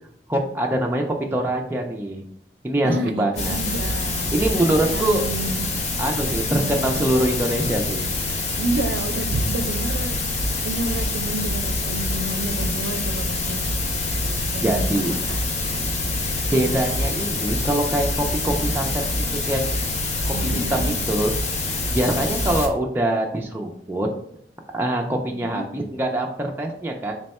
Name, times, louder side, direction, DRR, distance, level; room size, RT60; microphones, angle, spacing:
voice 1, 0.3-1.0 1.3-2.2 2.6-3.6 4.3-5.2 6.0-8.1 14.6-15.1 16.5-19.6 20.3-21.3 21.9-24.1 24.7-27.2, right 1 dB, 10° right, 1 dB, 0.3 m, -24 dB
voice 2, 2.8-4.4 4.9-5.7 6.6-7.2 8.6-13.6 14.5-14.9 15.3-15.4 20.3-21.0 22.1-22.4 25.3-25.6, right 2 dB, 80° right, 8 dB, 0.4 m, -30 dB
sound 1, 3.4-22.7, left 2 dB, 40° left, 0.5 m, -25 dB
3.4 x 2.2 x 4.1 m, 0.70 s
head